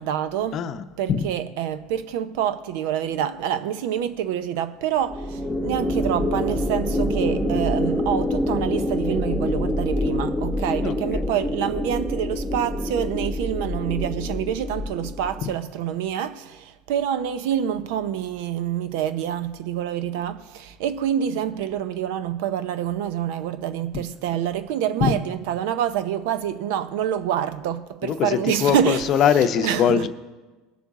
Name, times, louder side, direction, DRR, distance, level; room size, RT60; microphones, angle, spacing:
voice 1, 0.0-0.6 1.0-29.0 29.6-30.0, right 10 dB, 75° right, 0.7 m, -26 dB
voice 2, 0.5-1.3 10.8-11.3 15.4-15.5 23.9-24.0 25.0-25.2 28.0-30.1, left 8 dB, 45° left, 0.7 m, -22 dB
sound 1, 5.1-15.5, left 1 dB, 5° left, 1.0 m, -26 dB
20.5 x 6.9 x 3.7 m
supercardioid pair, 130°, 0 cm